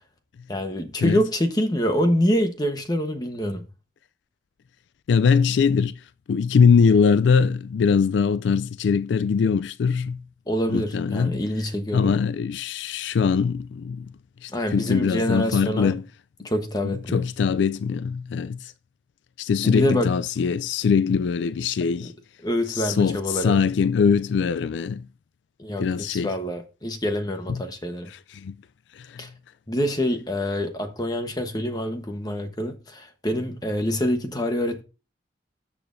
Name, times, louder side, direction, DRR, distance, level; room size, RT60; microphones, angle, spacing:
voice 1, 0.5-3.7 10.5-12.1 14.5-15.9 16.4-17.2 19.6-20.1 22.4-23.6 25.6-28.1 29.2-29.3 29.7-34.8, equal, 20° left, 1.0 m, -26 dB
voice 2, 5.1-10.2 10.7-11.4 11.9-14.1 14.4-16.0 16.8-18.7 19.4-22.1 22.7-25.1 25.8-26.3 27.5-27.6 28.1-28.6 28.9-29.2, left 6 dB, 80° left, 0.3 m, -22 dB
13.5 x 7.6 x 2.6 m
head